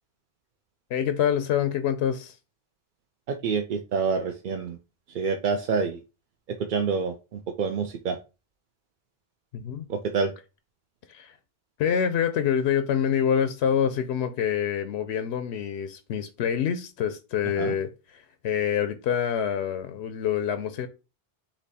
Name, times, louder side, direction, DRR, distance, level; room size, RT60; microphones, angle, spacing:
voice 1, 0.9-2.3 9.5-9.9 11.1-11.3 11.8-20.9, left 8 dB, 90° left, 0.9 m, -26 dB
voice 2, 3.3-4.8 5.1-6.0 6.5-8.2 9.9-10.3 17.6-17.7, right 5 dB, 60° right, 0.6 m, -27 dB
4.3 x 3.0 x 4.0 m
omnidirectional pair, 1.1 m